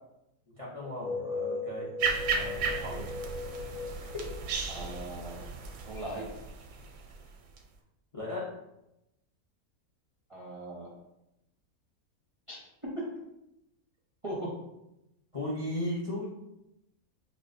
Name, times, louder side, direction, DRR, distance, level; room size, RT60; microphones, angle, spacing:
voice 1, 0.5-1.9 2.3-3.1 4.0-4.3 8.1-8.5 15.3-16.3, left 1 dB, 40° left, -5 dB, 0.4 m, -36 dB
sound 1, 0.8-5.4, left 3 dB, 75° left, 1.0 m, -38 dB
sound 2, 2.0-7.6, right 5 dB, 90° right, 1.1 m, -35 dB
voice 2, 4.7-5.4 5.8-6.3 10.3-10.9 12.5-12.6 14.2-14.5, right 1 dB, 35° right, -6 dB, 0.5 m, -39 dB
5.4 x 2.4 x 2.5 m, 0.88 s
omnidirectional pair, 1.6 m